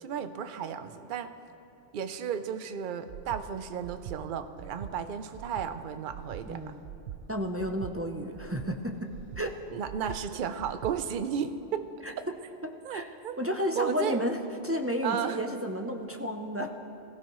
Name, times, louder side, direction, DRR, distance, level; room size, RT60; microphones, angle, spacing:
voice 1, 0.0-1.3 1.9-6.7 9.7-11.8 12.8-13.4 13.8-14.2 15.0-15.4, right 8 dB, 55° right, 10 dB, 0.7 m, -34 dB
Breathing, 3.1-3.4 3.8-4.2 4.6-4.9 5.3-5.7 6.1-6.4 6.8-7.2 7.6-7.9 8.3-8.7 9.1-9.4 9.8-10.2 10.6-10.9, right 11 dB, 90° right, 0.9 m, -42 dB
voice 2, 6.5-6.8 7.3-9.1 9.4-9.6 12.0-12.1 12.6-13.1 13.4-14.4 14.6-16.7, equal, 20° right, 3 dB, 0.4 m, -32 dB
21.5 x 15.0 x 3.1 m, 2.9 s
omnidirectional pair, 1.2 m